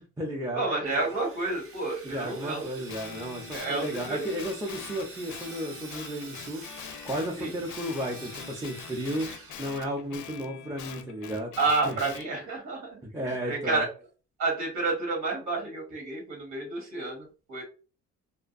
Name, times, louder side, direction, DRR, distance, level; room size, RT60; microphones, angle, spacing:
voice 1, 0.0-0.6 2.0-6.6 7.0-9.3 9.6-11.5 11.9-12.0 13.0-13.8, equal, 10° right, -2 dB, 0.6 m, -33 dB
voice 2, 0.5-2.6 3.5-4.2 7.4-7.5 11.6-13.9 14.4-17.6, right 3 dB, 85° right, 0 dB, 1.3 m, -30 dB
Sawing, 0.8-10.3, right 3 dB, 50° right, 0.8 m, -47 dB
Guitar, 2.9-7.4 7.7-12.3, left 8 dB, 75° left, 0.5 m, -44 dB
2.6 x 2.1 x 2.5 m, 0.34 s
cardioid pair, 90°, 30 cm